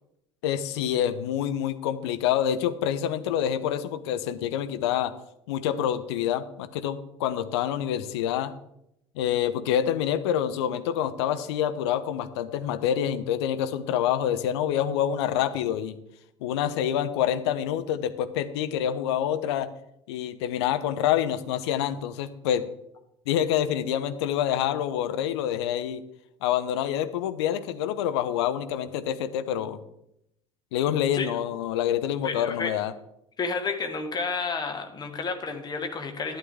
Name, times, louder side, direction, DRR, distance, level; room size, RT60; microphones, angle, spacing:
voice 1, 0.4-5.1 5.5-8.5 9.2-16.0 16.4-19.7 20.1-22.7 23.3-26.0 26.4-29.8 30.7-32.9, left 10 dB, 60° left, 11 dB, 0.8 m, -27 dB
voice 2, 32.2-32.7 33.4-36.4, left 4 dB, 25° left, 6 dB, 1.5 m, -31 dB
11.5 x 11.0 x 3.5 m, 0.80 s
figure-of-eight pair, 65°, 16 cm